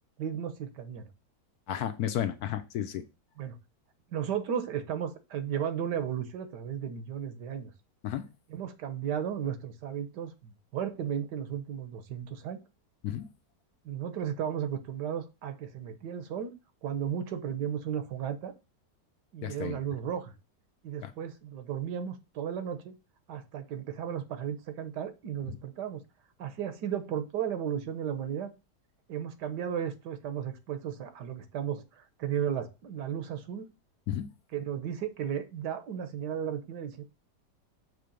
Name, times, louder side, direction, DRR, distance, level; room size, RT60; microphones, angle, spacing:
voice 1, 0.2-1.1 3.4-3.6 4.1-7.7 8.5-12.6 13.8-16.5 16.8-18.5 19.3-20.3 20.8-22.9 23.3-26.0 26.4-28.5 29.1-33.7 34.5-37.0, right 9 dB, 80° right, 1.4 m, -34 dB
voice 2, 1.7-3.0 8.0-8.3 13.0-13.3 19.4-19.8 21.0-21.1 34.1-34.3, left 10 dB, 70° left, 1.1 m, -32 dB
6.6 x 3.3 x 5.1 m
omnidirectional pair, 1.8 m